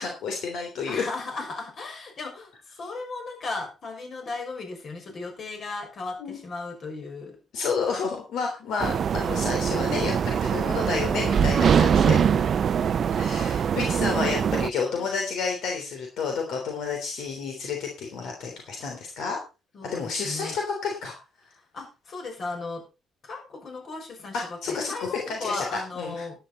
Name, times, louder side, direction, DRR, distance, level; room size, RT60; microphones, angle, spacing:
voice 1, 0.0-1.1 6.2-6.4 7.5-12.2 13.1-19.4 19.8-21.1 24.3-26.4, left 5 dB, 80° left, 2 dB, 3.3 m, -30 dB
voice 2, 0.9-2.5 2.8-7.4 8.6-8.9 11.7-12.5 15.0-15.1 19.7-20.6 21.7-22.8 23.2-26.4, left 3 dB, 55° left, 3 dB, 6.1 m, -36 dB
sound 1, 8.8-14.7, right 7 dB, 55° right, 0.5 m, -23 dB
11.5 x 10.0 x 4.2 m, 0.30 s
cardioid pair, 90°, 0 cm